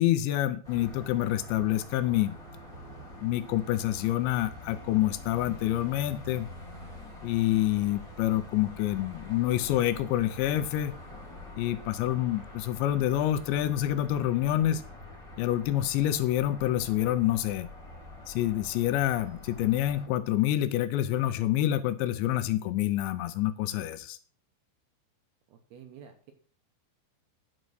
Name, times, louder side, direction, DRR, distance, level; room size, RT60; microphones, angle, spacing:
voice 1, 0.0-2.3 3.2-6.5 7.2-10.9 11.6-14.8 15.4-17.7 18.3-24.2, left 13 dB, 80° left, 11 dB, 2.7 m, -27 dB
sound 1, 0.6-20.1, left 1 dB, ahead, 2.6 m, -46 dB
voice 2, 25.5-26.3, right 8 dB, 75° right, 6 dB, 2.5 m, -50 dB
10.0 x 5.3 x 6.3 m, 0.42 s
omnidirectional pair, 5.4 m